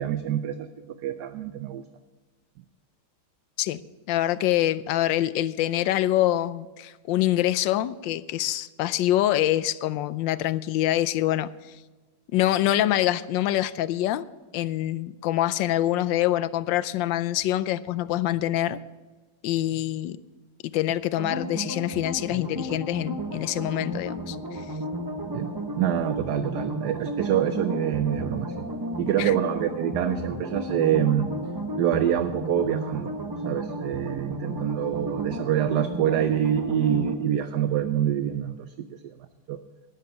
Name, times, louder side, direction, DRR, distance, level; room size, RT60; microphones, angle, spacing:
voice 1, 0.0-1.8 25.3-25.5 25.8-28.5 29.0-31.3 31.8-33.1 33.4-38.6 39.0-39.1 39.5-39.6, right 10 dB, 70° right, 10 dB, 1.1 m, -26 dB
voice 2, 4.1-11.5 12.3-14.3 14.5-18.8 19.4-20.2 20.7-24.6 29.2-29.3, left 13 dB, 85° left, 16 dB, 1.3 m, -25 dB
sound 1, 21.2-37.1, equal, 35° right, 0.3 m, -33 dB
12.5 x 11.0 x 5.6 m, 1.3 s
omnidirectional pair, 2.0 m